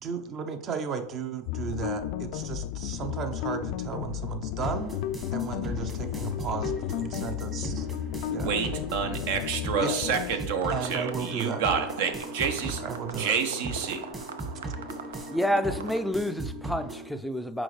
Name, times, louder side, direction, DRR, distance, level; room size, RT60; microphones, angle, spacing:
voice 1, 0.0-5.0 5.3-7.9 8.2-8.5 9.8-10.0 10.7-11.6 12.8-13.3, right 6 dB, 40° right, 0.8 m, -34 dB
sound 1, 1.5-10.4, left 12 dB, 60° left, 0.4 m, -33 dB
sound 2, 4.6-17.1, right 1 dB, 25° right, 1.4 m, -38 dB
voice 2, 8.3-12.8 13.2-14.1, right 6 dB, 65° right, 1.0 m, -29 dB
sound 3, 10.6-16.0, right 6 dB, 80° right, 0.5 m, -41 dB
voice 3, 15.3-17.6, equal, ahead, 0.4 m, -29 dB
6.1 x 4.8 x 3.3 m
hypercardioid pair, 95°, 0 cm